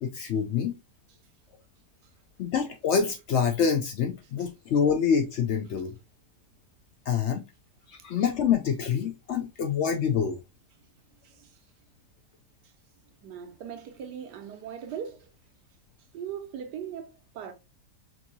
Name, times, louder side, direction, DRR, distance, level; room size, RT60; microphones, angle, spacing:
voice 1, 0.0-0.7 2.4-6.0 7.1-7.4 7.9-10.4, left 7 dB, 75° left, 0.6 m, -26 dB
voice 2, 11.2-11.6 13.2-15.3 16.1-17.5, right 8 dB, 85° right, 1.4 m, -39 dB
5.2 x 2.8 x 2.6 m
omnidirectional pair, 1.7 m